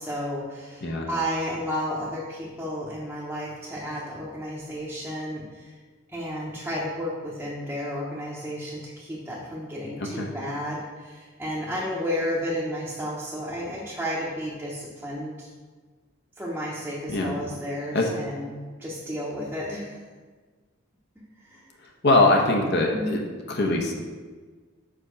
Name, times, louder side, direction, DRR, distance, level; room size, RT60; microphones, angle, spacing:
voice 1, 0.0-5.8 6.1-15.5 16.4-20.0 21.4-21.7 22.8-23.2, equal, 10° right, -7 dB, 0.8 m, -32 dB
voice 2, 22.0-23.2 23.5-23.9, left 2 dB, 55° left, 0 dB, 0.8 m, -22 dB
5.3 x 5.0 x 5.0 m, 1.4 s
head